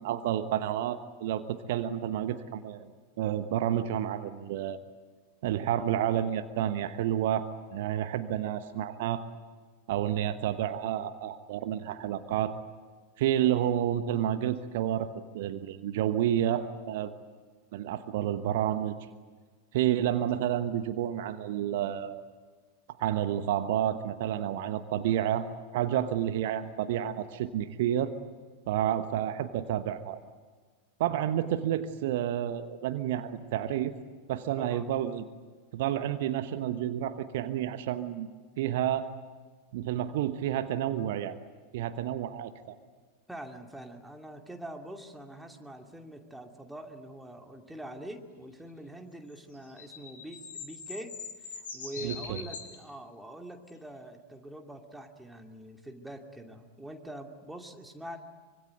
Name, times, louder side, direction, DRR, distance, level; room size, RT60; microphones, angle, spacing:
voice 1, 0.0-2.9 3.2-4.8 5.4-9.2 9.9-12.5 13.2-17.1 17.7-19.0 19.7-22.2 23.0-25.5 25.7-28.1 28.7-30.2 31.0-33.9 34.3-35.2 35.7-38.3 38.6-39.1 39.7-41.4 41.7-42.8 52.0-52.4, right 11 dB, 55° right, 10 dB, 1.2 m, -30 dB
voice 2, 34.6-34.9 43.3-51.1 51.4-58.2, right 1 dB, 5° right, 3 dB, 2.6 m, -44 dB
sound 1, 49.4-52.8 53.7-53.8, left 5 dB, 65° left, 7.1 m, -42 dB
25.0 x 24.5 x 9.3 m, 1.4 s
figure-of-eight pair, 90°, 0 cm